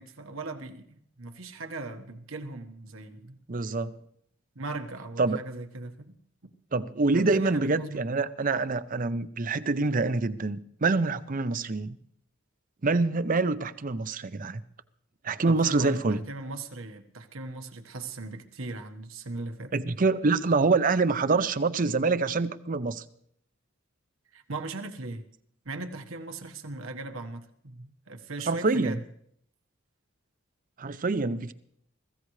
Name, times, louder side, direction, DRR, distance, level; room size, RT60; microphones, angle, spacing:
voice 1, 0.0-3.4 4.5-6.2 7.1-8.2 15.4-19.7 24.3-25.2 25.6-29.0, right 2 dB, 80° right, 1.4 m, -39 dB
voice 2, 3.5-3.9 5.2-5.4 6.7-12.0 12.8-14.6 15.2-16.2 19.7-23.0 28.5-29.0 30.8-31.5, right 3 dB, 40° right, 0.6 m, -26 dB
23.5 x 15.0 x 3.2 m
head